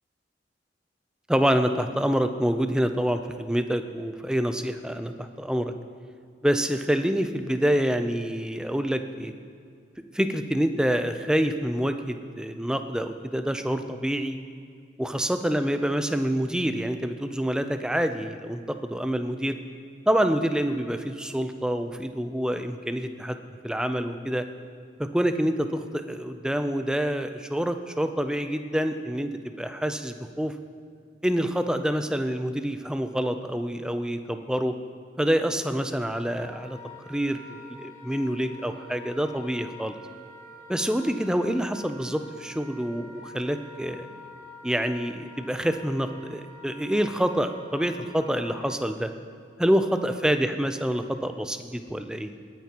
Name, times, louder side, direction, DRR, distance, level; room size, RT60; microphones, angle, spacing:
voice 1, 1.3-5.7 6.4-9.3 10.1-14.4 15.0-19.6 20.1-23.4 23.6-24.5 25.0-30.5 31.2-34.7 35.2-36.8 37.1-40.0 40.7-44.1 44.6-49.1 49.6-52.3, equal, 5° right, 8 dB, 0.4 m, -27 dB
Wind instrument woodwind instrument, 36.3-48.8, left 2 dB, 40° left, 1.7 m, -47 dB
20.5 x 9.3 x 2.9 m, 2.4 s
head